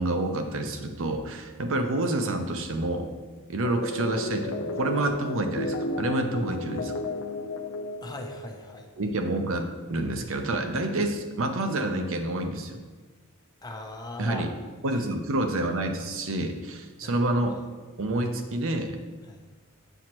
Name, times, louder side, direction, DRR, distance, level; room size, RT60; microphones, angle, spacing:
voice 1, 0.0-3.1 3.5-6.9 9.0-12.8 14.2-14.5 14.8-17.6 18.0-18.9, right 1 dB, 65° right, 5 dB, 0.7 m, -28 dB
sound 1, 3.6-8.8, left 1 dB, 65° left, 0.5 m, -33 dB
voice 2, 8.0-8.9 13.6-14.5 14.9-15.0 17.0-17.2 19.3-19.4, left 1 dB, 20° left, 3 dB, 0.6 m, -39 dB
7.9 x 6.3 x 3.0 m, 1.3 s
head